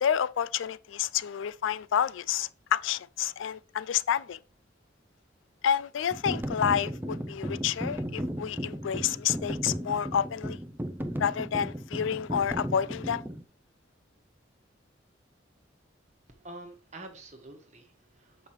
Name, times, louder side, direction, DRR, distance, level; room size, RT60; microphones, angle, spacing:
voice 1, 0.0-4.4 5.6-10.6 11.2-13.2, left 8 dB, 85° left, 0.4 m, -29 dB
sound 1, 6.1-13.4, equal, 10° right, 0.5 m, -35 dB
voice 2, 16.3-18.5, right 2 dB, 35° right, 1.2 m, -47 dB
7.4 x 5.2 x 3.1 m
head